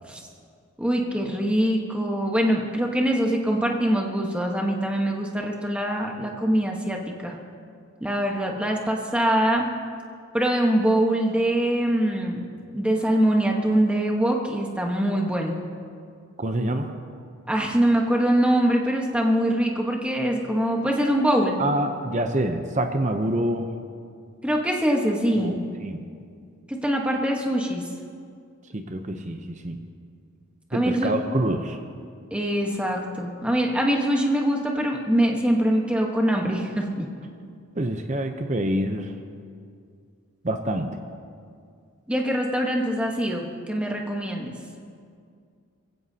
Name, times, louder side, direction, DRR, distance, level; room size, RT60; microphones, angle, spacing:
voice 1, 0.8-7.4 8.0-9.7 10.3-12.4 12.7-15.6 17.5-21.6 24.4-25.5 26.7-27.8 30.7-31.1 32.3-37.1 42.1-44.6, right 1 dB, 5° right, 0 dB, 1.2 m, -23 dB
voice 2, 16.4-16.9 21.6-23.7 25.4-26.0 28.7-29.8 30.7-31.8 37.8-39.1 40.4-41.0, right 1 dB, 35° right, 6 dB, 0.7 m, -26 dB
22.0 x 15.5 x 2.8 m, 2.3 s
head